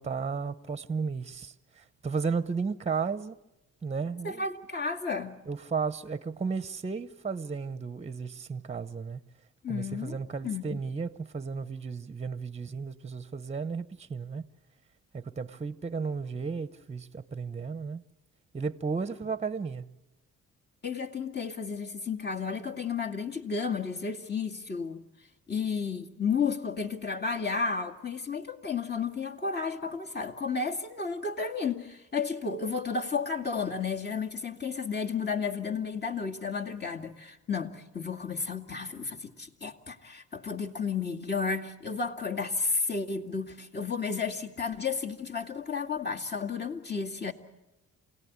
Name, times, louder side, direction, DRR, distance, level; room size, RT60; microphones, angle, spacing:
voice 1, 0.0-3.3 3.8-4.4 5.5-9.2 9.7-14.5 15.1-18.0 18.5-19.9, right 5 dB, 20° right, 1.0 m, -34 dB
voice 2, 4.2-5.4 9.6-10.2 10.4-10.8 20.8-25.0 25.5-47.3, left 5 dB, 35° left, 2.3 m, -32 dB
28.5 x 18.0 x 9.6 m
cardioid pair, 90°, 30 cm